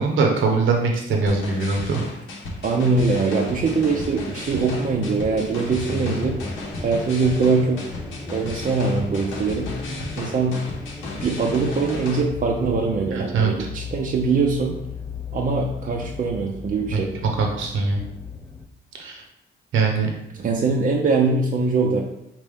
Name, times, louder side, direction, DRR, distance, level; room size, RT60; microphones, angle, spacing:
voice 1, 0.0-2.0 13.1-13.5 16.9-17.0 17.4-18.0 18.9-19.2 19.7-20.1, right 4 dB, 80° right, 1 dB, 0.9 m, -22 dB
sound 1, 1.3-12.2, left 2 dB, 85° left, 1.0 m, -35 dB
voice 2, 2.6-6.5 6.8-7.8 8.3-9.7 10.2-10.6 11.1-14.8 15.3-17.1 20.3-22.0, right 4 dB, 40° right, 0 dB, 0.6 m, -22 dB
sound 2, 3.6-18.7, left 3 dB, 10° left, 0.4 m, -36 dB
5.3 x 2.9 x 3.4 m, 0.83 s
cardioid pair, 90°, 20 cm